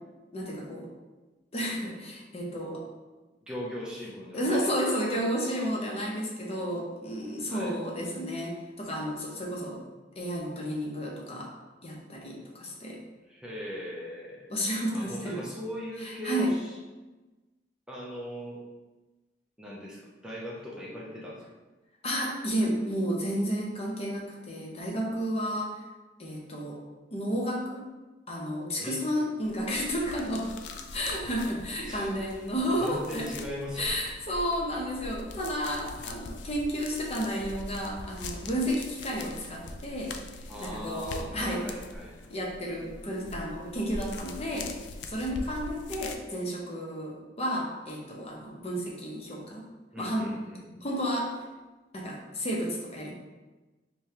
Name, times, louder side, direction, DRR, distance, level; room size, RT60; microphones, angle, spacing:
voice 1, 0.3-0.9 1.5-2.8 4.3-9.8 10.2-11.5 11.8-13.0 14.5-15.4 16.0-16.5 22.0-25.7 26.2-26.8 27.1-27.9 28.3-30.5 30.9-33.3 33.8-40.1 40.4-41.6 42.3-44.7 45.1-49.6 50.0-50.3 50.8-51.3 51.9-53.1, equal, 35° left, -2 dB, 0.7 m, -32 dB
voice 2, 3.4-4.6 7.5-7.8 13.3-14.5 14.9-16.7 17.9-18.6 19.6-21.5 28.8-29.0 31.8-32.1 32.8-34.0 40.5-42.1 49.9-50.9, equal, 5° right, -5 dB, 0.5 m, -39 dB
sound 1, 29.4-46.2, left 2 dB, 70° left, 0.3 m, -42 dB
4.9 x 2.2 x 2.8 m, 1.2 s
head